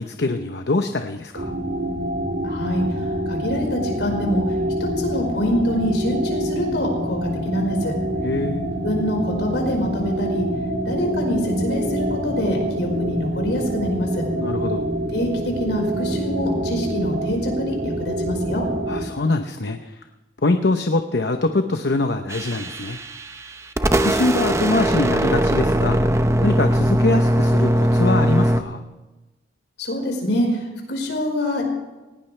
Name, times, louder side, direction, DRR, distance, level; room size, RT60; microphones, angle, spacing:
voice 1, 0.0-1.6 8.2-8.7 14.3-14.9 18.9-20.0 20.4-23.0 24.0-28.8, left 2 dB, 70° left, 6 dB, 0.9 m, -23 dB
sound 1, 1.3-19.1, right 1 dB, 70° right, 3.5 m, -26 dB
voice 2, 2.4-2.8 3.3-4.4 4.8-7.9 8.8-10.5 10.8-14.2 15.1-18.6 29.8-30.5 30.9-31.7, left 1 dB, 85° left, 1 dB, 4.9 m, -25 dB
sound 2, 22.3-23.5 23.8-28.6, right 1 dB, 15° right, 0.8 m, -20 dB
19.0 x 18.0 x 3.3 m, 1.1 s
head